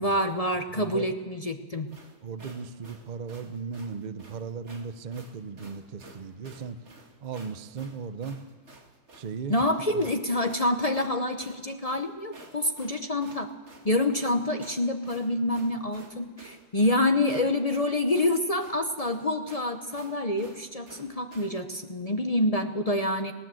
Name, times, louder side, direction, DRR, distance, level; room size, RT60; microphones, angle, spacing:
voice 1, 0.0-1.9 9.5-13.5 13.8-23.3, left 1 dB, 45° left, 6 dB, 0.4 m, -27 dB
voice 2, 0.7-1.1 2.2-6.8 7.2-8.4 9.1-9.6 9.9-10.0, right 5 dB, 75° right, 11 dB, 0.4 m, -37 dB
sound 1, 1.9-21.6, right 3 dB, 35° right, 2.2 m, -51 dB
18.5 x 18.0 x 7.7 m, 1.3 s
omnidirectional pair, 2.1 m